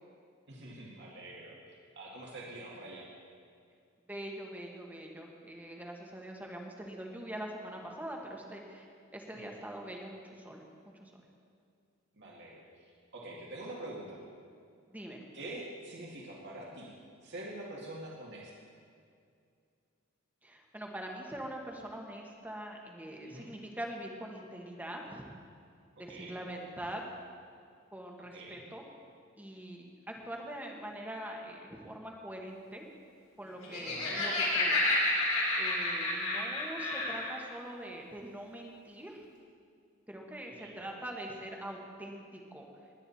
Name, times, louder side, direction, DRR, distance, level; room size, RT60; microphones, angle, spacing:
voice 1, 0.5-3.1 9.3-9.5 12.1-14.2 15.3-16.9 17.2-18.5 23.2-23.5 26.1-26.4 28.3-28.6 33.8-34.2 40.6-41.0, right 1 dB, 55° right, -3 dB, 2.2 m, -45 dB
voice 2, 4.1-8.9 9.1-10.6 10.9-11.1 14.9-15.2 20.4-25.3 26.0-27.0 27.9-28.8 29.4-29.9 30.2-32.9 33.4-34.8 35.6-39.2 40.1-42.7, right 1 dB, 10° right, 0 dB, 1.5 m, -43 dB
Laughter, 33.5-37.3, left 2 dB, 85° left, 3.7 m, -30 dB
21.0 x 9.3 x 4.2 m, 2.3 s
head